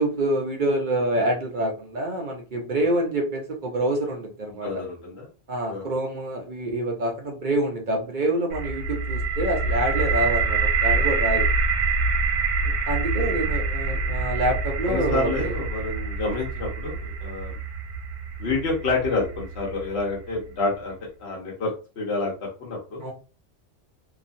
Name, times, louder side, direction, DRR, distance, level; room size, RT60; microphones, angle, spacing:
voice 1, 0.0-4.7 5.5-11.5 12.6-15.5 23.0-23.1, right 1 dB, 55° right, 2 dB, 0.6 m, -26 dB
voice 2, 4.6-5.3 5.7-5.9 13.2-13.3 14.9-17.6 18.4-23.0, left 3 dB, 70° left, -3 dB, 1.1 m, -28 dB
sound 1, 8.5-20.3, right 4 dB, 75° right, 1.1 m, -26 dB
2.8 x 2.4 x 2.5 m, 0.35 s
omnidirectional pair, 1.2 m